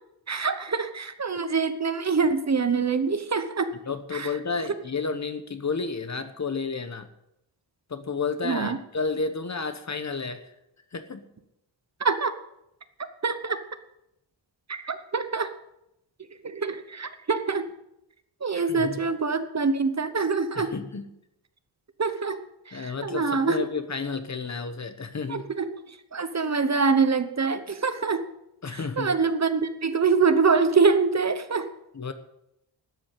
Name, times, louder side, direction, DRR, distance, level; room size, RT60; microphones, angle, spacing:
voice 1, 0.3-3.7 4.1-4.3 8.4-8.8 12.0-12.3 13.2-13.6 14.7-15.5 16.4-17.6 18.4-20.7 22.0-22.4 22.7-23.6 25.3-25.7 26.1-28.2 29.0-31.7, right 4 dB, 35° right, 10 dB, 1.0 m, -25 dB
voice 2, 3.8-7.1 7.9-10.5 10.9-11.2 18.5-19.0 20.5-21.1 22.7-25.5 28.6-29.1 31.9-32.1, left 4 dB, 35° left, 10 dB, 1.2 m, -31 dB
12.5 x 8.7 x 8.3 m, 0.83 s
wide cardioid pair, 140°, 46 cm